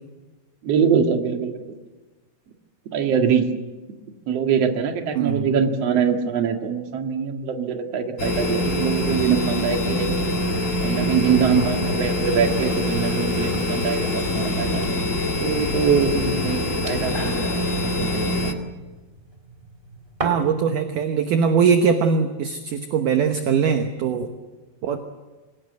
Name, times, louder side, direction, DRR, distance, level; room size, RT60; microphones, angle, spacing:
voice 1, 0.6-1.7 2.9-3.5 4.3-10.2 10.8-14.9 15.4-18.5, right 6 dB, 50° right, 4 dB, 2.4 m, -23 dB
voice 2, 5.2-5.5 20.2-24.3 24.8-25.0, right 6 dB, 65° right, 6 dB, 2.3 m, -21 dB
sound 1, 8.2-18.5, left 1 dB, 40° left, 1.1 m, -24 dB
sound 2, 12.0-20.6, right 2 dB, 15° right, 2.4 m, -38 dB
26.0 x 18.0 x 8.3 m, 1.3 s
omnidirectional pair, 4.7 m